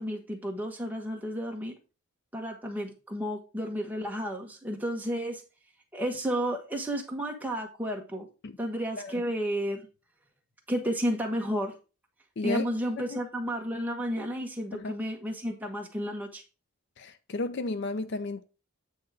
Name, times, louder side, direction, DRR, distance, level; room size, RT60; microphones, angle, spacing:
voice 1, 0.0-1.7 2.3-5.4 5.9-8.3 8.6-9.8 10.7-11.7 12.4-16.4, equal, 10° right, 1.2 m, -32 dB
voice 2, 12.4-12.7 13.0-13.2 14.7-14.9 17.0-18.4, left 3 dB, 50° left, 0.5 m, -33 dB
8.6 x 3.5 x 4.8 m
head